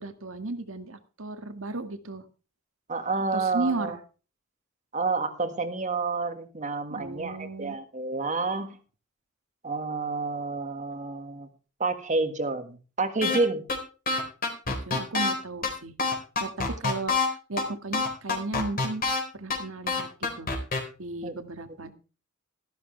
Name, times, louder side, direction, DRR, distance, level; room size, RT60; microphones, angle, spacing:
voice 1, 0.0-2.3 3.3-4.0 6.9-7.7 14.7-15.9 16.4-19.0 19.3-20.5 21.0-21.9, right 2 dB, 70° right, 8 dB, 1.8 m, -35 dB
voice 2, 2.9-4.0 4.9-8.8 9.6-11.5 11.8-13.6 21.2-21.4, right 3 dB, 35° right, 8 dB, 1.8 m, -29 dB
sound 1, 13.2-13.4 13.7-13.8 14.1-15.3 15.6-15.7 16.0-17.3 17.6-17.7 17.9-19.2 19.5-19.6 19.9-20.8, left 3 dB, 45° left, 4.2 m, -26 dB
14.0 x 13.0 x 3.3 m, 0.34 s
head